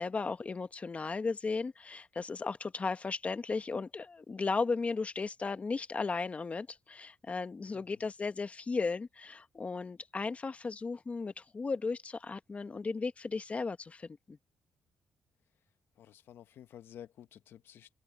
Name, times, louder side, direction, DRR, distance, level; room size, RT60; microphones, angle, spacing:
voice 1, 0.0-14.4, left 4 dB, 35° left, 1.2 m, -35 dB
voice 2, 16.0-17.9, left 10 dB, 75° left, 1.1 m, -52 dB
open air
cardioid pair, 65°, 4 cm